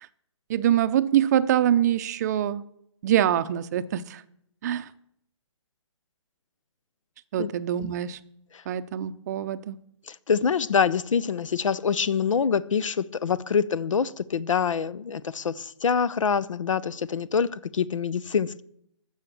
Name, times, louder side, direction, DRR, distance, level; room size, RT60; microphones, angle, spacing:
voice 1, 0.5-2.6 3.0-4.2 4.6-4.9 7.3-8.2 8.7-9.8, right 11 dB, 35° right, 13 dB, 0.5 m, -24 dB
voice 2, 10.1-18.6, left 6 dB, 85° left, 20 dB, 0.6 m, -25 dB
14.5 x 6.4 x 7.1 m, 0.74 s
hypercardioid pair, 155°, 16 cm